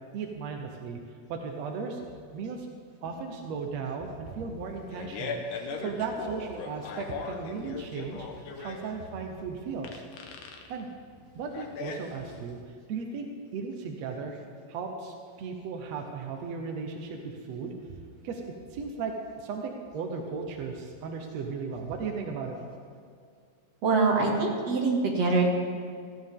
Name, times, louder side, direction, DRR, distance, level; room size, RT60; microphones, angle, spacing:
voice 1, 0.1-1.0 1.3-2.0 2.3-2.7 3.0-10.0 10.7-10.9 11.3-12.6 12.9-13.3 13.5-14.4 14.7-17.7 18.2-22.6, right 5 dB, 75° right, 3 dB, 1.5 m, -36 dB
Fart, 4.6-12.6, left 4 dB, 65° left, 2.4 m, -39 dB
voice 2, 23.8-25.5, right 3 dB, 45° right, -2 dB, 2.9 m, -24 dB
19.0 x 15.0 x 3.7 m, 2.2 s
omnidirectional pair, 4.5 m